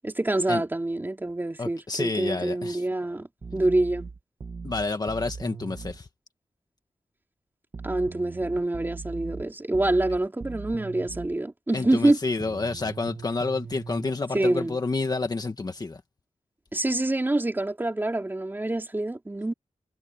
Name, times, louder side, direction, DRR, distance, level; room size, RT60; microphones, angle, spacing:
voice 1, 0.0-4.1 7.8-12.2 14.3-14.8 16.7-19.5, right 2 dB, 15° right, 3.5 m, -26 dB
voice 2, 1.6-2.8 4.6-6.1 11.7-16.0, left 3 dB, 35° left, 1.7 m, -29 dB
sound 1, 3.4-6.0 7.7-11.4 12.4-14.1, right 4 dB, 40° right, 2.0 m, -39 dB
wide cardioid pair, 165°, 12 cm